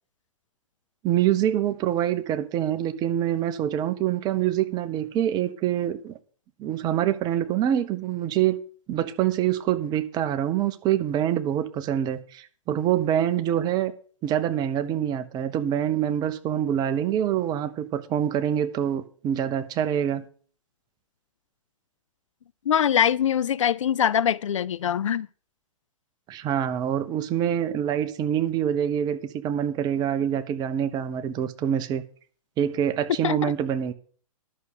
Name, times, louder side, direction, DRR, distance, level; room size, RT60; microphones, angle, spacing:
voice 1, 1.0-6.2 6.6-8.6 8.9-13.9 14.2-20.2 26.3-32.0 32.6-33.9, right 10 dB, 25° right, 0.9 m, -25 dB
voice 2, 22.7-25.3 33.2-33.5, left 9 dB, 65° left, 0.5 m, -23 dB
11.0 x 6.4 x 6.7 m
figure-of-eight pair, 120°, 18 cm